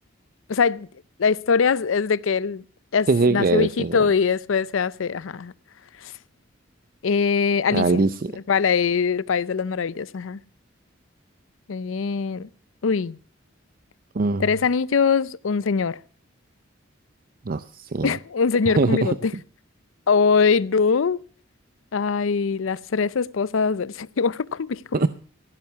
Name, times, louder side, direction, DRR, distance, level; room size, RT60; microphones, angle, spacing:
voice 1, 0.5-0.9 1.2-2.6 2.9-5.5 6.0-6.1 7.0-8.0 8.5-10.4 11.7-12.5 12.8-13.2 14.4-16.0 18.0-19.3 20.1-21.2 21.9-24.8, left 5 dB, 90° left, 0.5 m, -22 dB
voice 2, 3.1-4.0 7.7-8.3 14.1-14.5 17.5-18.2 18.7-19.1 24.9-25.1, right 3 dB, 45° right, 0.5 m, -22 dB
16.5 x 9.4 x 5.7 m
head